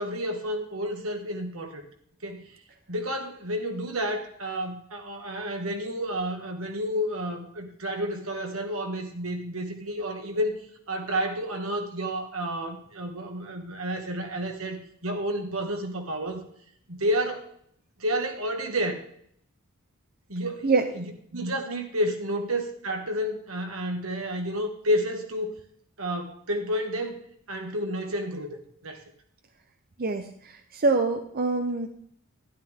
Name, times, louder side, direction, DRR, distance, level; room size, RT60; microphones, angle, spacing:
voice 1, 0.0-1.8 2.2-2.5 2.9-10.6 10.9-16.4 16.9-17.5 18.0-19.0 20.3-21.0 21.3-25.5 26.0-27.2 27.5-29.0, equal, 80° right, 4 dB, 1.9 m, -30 dB
voice 2, 30.0-31.9, right 3 dB, 45° right, 6 dB, 0.8 m, -25 dB
12.0 x 11.0 x 3.7 m, 0.67 s
head